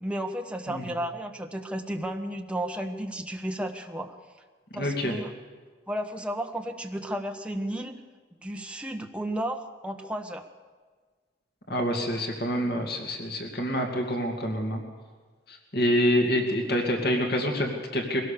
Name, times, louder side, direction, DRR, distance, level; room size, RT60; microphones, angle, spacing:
voice 1, 0.0-4.1 4.7-5.3 5.9-8.0 8.4-10.4, right 1 dB, 5° right, 4 dB, 1.4 m, -33 dB
voice 2, 4.7-5.1 11.7-14.8 15.5-18.2, equal, 60° left, 2 dB, 2.4 m, -27 dB
22.5 x 17.0 x 6.9 m, 1.4 s
head